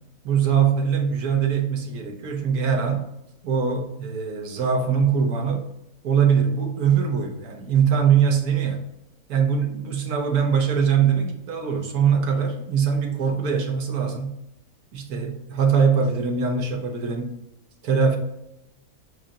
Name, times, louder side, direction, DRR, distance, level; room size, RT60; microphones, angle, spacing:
voice 1, 0.2-3.1 3.4-5.7 6.0-8.9 9.3-14.3 14.9-17.3 17.8-18.2, right 7 dB, 85° right, 3 dB, 1.4 m, -22 dB
7.5 x 2.5 x 2.8 m, 0.86 s
omnidirectional pair, 1.5 m